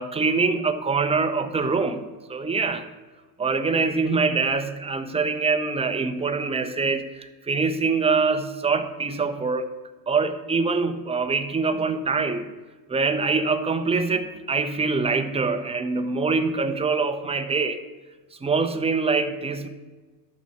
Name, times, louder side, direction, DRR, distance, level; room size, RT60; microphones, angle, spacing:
voice 1, 0.0-2.9 3.4-9.7 10.1-12.5 12.9-17.8 18.4-19.7, right 4 dB, 10° right, 8 dB, 0.6 m, -24 dB
12.0 x 4.3 x 7.2 m, 1.3 s
supercardioid pair, 105°, 49 cm